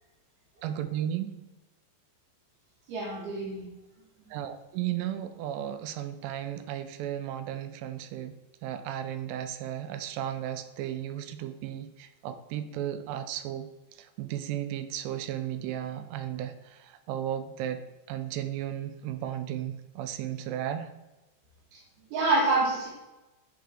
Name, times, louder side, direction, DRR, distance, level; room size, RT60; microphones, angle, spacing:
voice 1, 0.6-1.3 4.3-8.3 8.6-13.7 14.2-17.8 18.1-20.9, right 11 dB, 85° right, 10 dB, 2.7 m, -34 dB
voice 2, 2.9-3.7 22.1-22.9, right 2 dB, 65° right, -9 dB, 3.5 m, -26 dB
10.0 x 3.7 x 3.7 m, 1.0 s
omnidirectional pair, 4.9 m